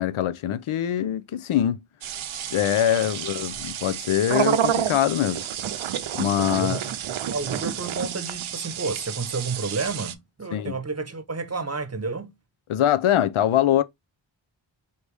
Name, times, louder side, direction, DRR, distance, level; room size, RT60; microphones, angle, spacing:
voice 1, 0.0-1.8 2.3-5.4 6.1-6.8 10.5-10.8 12.7-13.8, left 11 dB, 90° left, 0.6 m, -23 dB
sound 1, 2.0-10.1, right 9 dB, 80° right, 0.6 m, -29 dB
voice 2, 6.6-6.9 7.2-12.3, right 4 dB, 30° right, 0.8 m, -31 dB
4.7 x 2.8 x 3.3 m
wide cardioid pair, 60°, 48 cm